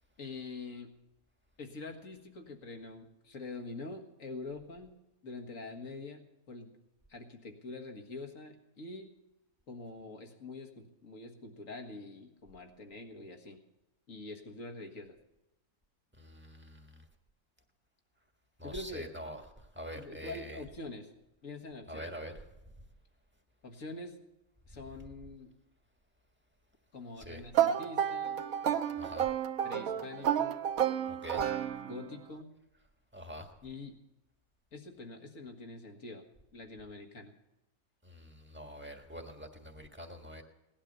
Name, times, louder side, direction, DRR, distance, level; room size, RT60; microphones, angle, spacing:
voice 1, 0.2-0.9 1.6-5.0 5.2-6.2 6.5-6.8 7.1-9.1 9.7-13.6 14.1-15.2 18.6-19.2 19.9-21.1 21.4-22.1 23.6-24.2 24.7-25.6 26.9-28.4 29.6-30.6 31.8-32.5 33.6-34.0 34.7-36.3 36.5-37.3, left 3 dB, 60° left, 4 dB, 2.0 m, -45 dB
voice 2, 16.2-17.0 18.6-20.6 21.9-22.5 27.2-27.4 29.0-29.3 31.1-31.5 33.1-33.5 38.0-40.4, equal, 10° right, 3 dB, 1.5 m, -45 dB
sound 1, 27.5-32.2, right 9 dB, 70° right, 1.3 m, -31 dB
18.0 x 12.0 x 6.7 m, 0.95 s
omnidirectional pair, 1.6 m